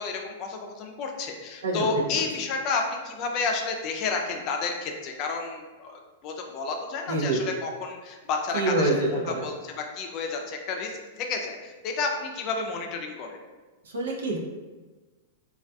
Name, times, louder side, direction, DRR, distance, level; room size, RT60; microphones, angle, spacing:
voice 1, 0.0-8.9 9.4-10.9 11.2-13.4, left 4 dB, 40° left, 3 dB, 0.4 m, -31 dB
voice 2, 1.6-2.2 7.1-7.4 8.5-9.5 13.8-14.4, right 2 dB, 85° right, -1 dB, 0.5 m, -26 dB
2.3 x 2.2 x 2.6 m, 1.3 s
hypercardioid pair, 130°, 0 cm